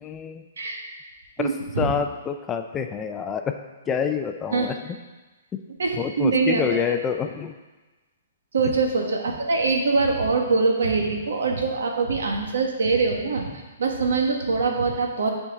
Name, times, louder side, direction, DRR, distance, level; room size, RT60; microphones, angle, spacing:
voice 1, 0.0-0.4 1.4-1.5 1.8-3.6 3.9-4.8 5.5-5.6 6.0-7.5, left 7 dB, 15° left, 6 dB, 0.4 m, -27 dB
voice 2, 1.4-1.9 4.5-4.7 5.8-6.9 8.5-15.3, right 4 dB, 85° right, 2 dB, 1.4 m, -23 dB
11.0 x 4.5 x 3.6 m, 1.2 s
hypercardioid pair, 160°, 0 cm